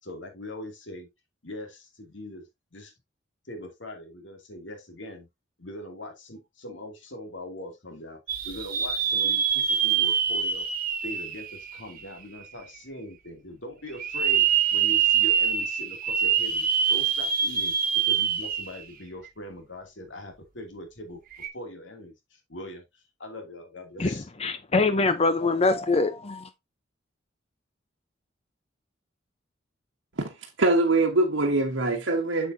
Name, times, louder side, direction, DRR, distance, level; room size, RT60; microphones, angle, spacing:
voice 1, 0.0-1.1 1.4-2.9 3.4-5.3 5.6-10.7 11.0-24.3, left 1 dB, 70° left, 2.6 m, -41 dB
sound 1, 8.3-12.2 12.8-12.9 13.9-18.9 19.3-19.4 21.3-21.5, right 8 dB, 50° right, 1.3 m, -25 dB
voice 2, 24.0-26.5, left 3 dB, 30° left, 0.7 m, -24 dB
voice 3, 30.6-32.5, right 2 dB, 80° right, 1.3 m, -23 dB
8.0 x 6.9 x 2.7 m
head